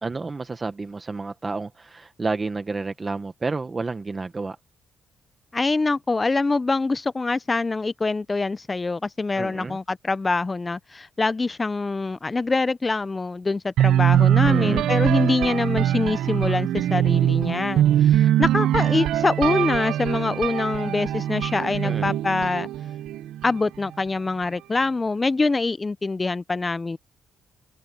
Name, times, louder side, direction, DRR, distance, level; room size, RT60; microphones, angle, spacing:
voice 1, 0.0-4.6 9.3-9.8 14.4-14.9 21.8-22.2, right 3 dB, 20° right, 0.9 m, -30 dB
voice 2, 5.5-22.7 23.4-27.0, left 3 dB, 20° left, 0.4 m, -24 dB
sound 1, 13.8-23.6, right 11 dB, 85° right, 0.6 m, -22 dB
cardioid pair, 135°, 0 cm